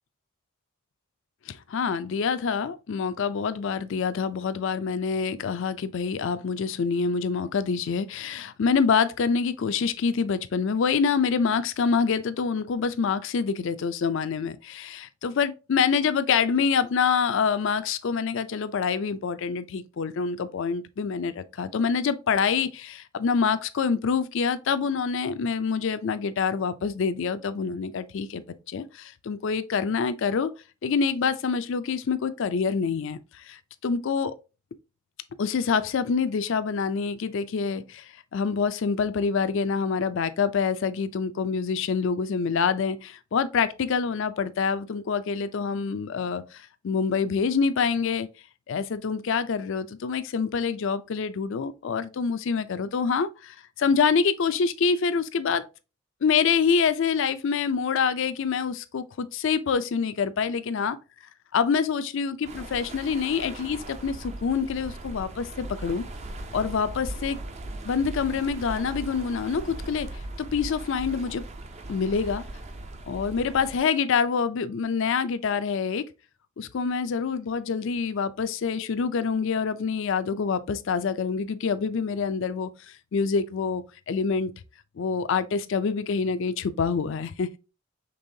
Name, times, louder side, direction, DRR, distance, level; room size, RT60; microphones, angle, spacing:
voice 1, 1.5-28.4 28.7-30.5 30.8-34.3 35.4-48.3 48.7-55.6 56.2-61.0 61.5-66.0 66.5-67.4 67.8-70.1 70.4-71.4 71.9-72.4 73.1-76.0 76.6-82.7 83.1-84.5 85.0-87.6, left 5 dB, 65° left, 0.4 m, -26 dB
sound 1, 62.4-73.8, right 2 dB, 30° right, 0.5 m, -39 dB
5.4 x 3.4 x 2.7 m
head